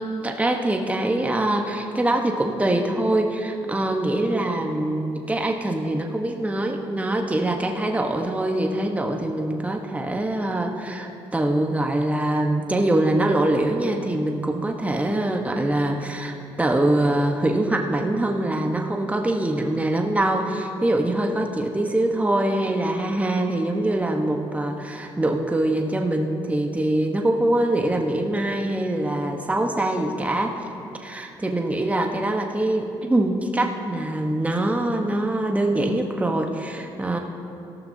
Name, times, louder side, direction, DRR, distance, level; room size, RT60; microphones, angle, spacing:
voice 1, 0.0-30.7 31.0-37.2, right 1 dB, 15° right, 2 dB, 1.2 m, -24 dB
18.0 x 13.5 x 2.8 m, 2.7 s
hypercardioid pair, 55°, 11 cm